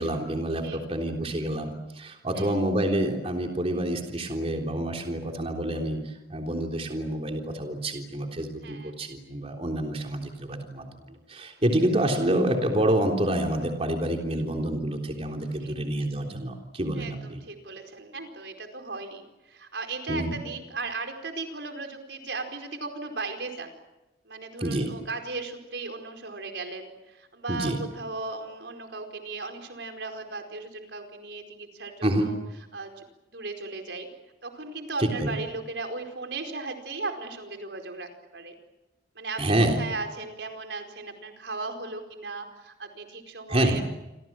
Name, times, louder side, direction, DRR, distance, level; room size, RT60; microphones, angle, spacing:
voice 1, 0.0-17.4 20.1-20.3 24.6-24.9 27.5-27.8 32.0-32.3 35.0-35.3 39.4-39.8 43.5-43.8, right 1 dB, 35° right, 2 dB, 3.5 m, -27 dB
voice 2, 8.6-8.9 15.6-15.8 16.9-23.7 24.2-32.4 32.7-34.1 34.4-38.5 39.1-43.8, right 3 dB, 80° right, 5 dB, 4.7 m, -37 dB
29.0 x 25.0 x 7.5 m, 0.98 s
head